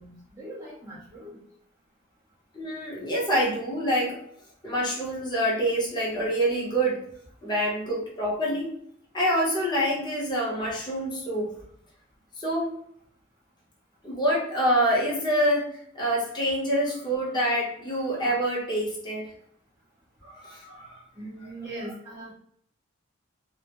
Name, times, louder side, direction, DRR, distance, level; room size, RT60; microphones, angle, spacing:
voice 1, 0.0-1.4 21.2-22.3, right 1 dB, 15° right, -7 dB, 0.5 m, -40 dB
voice 2, 2.5-4.2 4.6-7.0 7.4-8.7 9.1-11.5 12.4-12.7 14.0-19.3 20.2-21.0, equal, 20° left, -4 dB, 0.7 m, -26 dB
2.2 x 2.0 x 2.8 m, 0.68 s
head